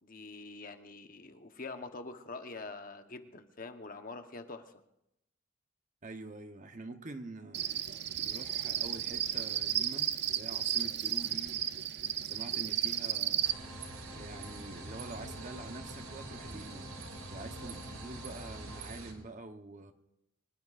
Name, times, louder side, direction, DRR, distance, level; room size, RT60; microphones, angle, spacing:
voice 1, 0.0-4.7, left 3 dB, 45° left, 1.1 m, -45 dB
voice 2, 6.0-7.7 8.2-11.7 12.2-13.5 14.1-16.9 17.3-19.9, right 2 dB, 40° right, 1.0 m, -46 dB
Cricket, 7.5-13.5, right 11 dB, 55° right, 0.6 m, -33 dB
sound 1, 13.4-19.1, right 2 dB, 85° right, 2.7 m, -45 dB
sound 2, 13.5-18.8, left 1 dB, 5° left, 1.2 m, -53 dB
24.0 x 19.5 x 2.5 m
head